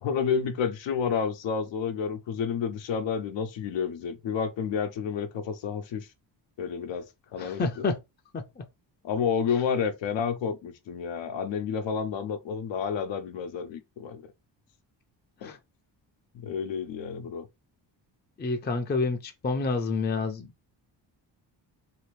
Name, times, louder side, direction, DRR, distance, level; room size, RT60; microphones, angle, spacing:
voice 1, 0.0-6.1 6.6-7.1 7.3-7.9 9.0-14.2 15.4-15.5 16.3-17.5, left 6 dB, 75° left, 0.8 m, -30 dB
voice 2, 7.4-8.0 8.3-8.6 15.4-15.6 18.4-20.7, left 3 dB, 25° left, 0.5 m, -29 dB
2.9 x 2.4 x 3.2 m
cardioid pair, 85°, 45 cm